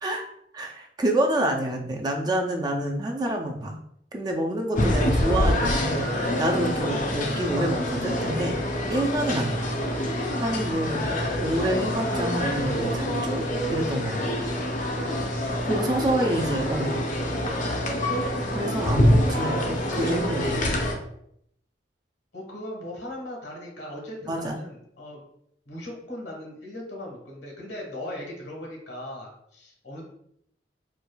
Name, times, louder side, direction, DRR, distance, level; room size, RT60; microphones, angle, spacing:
voice 1, 0.0-3.8 4.1-6.1 6.4-8.6 8.8-9.7 10.4-11.1 11.4-13.4 13.7-14.2 15.6-17.0 18.5-20.7 24.3-24.6, right 1 dB, 25° right, 2 dB, 0.4 m, -27 dB
sound 1, 4.8-20.9, left 1 dB, 45° left, 0.5 m, -26 dB
voice 2, 15.8-16.6 19.5-19.6 22.3-25.2 25.7-30.0, left 1 dB, 85° left, -2 dB, 1.3 m, -39 dB
4.6 x 2.3 x 2.2 m, 0.71 s
head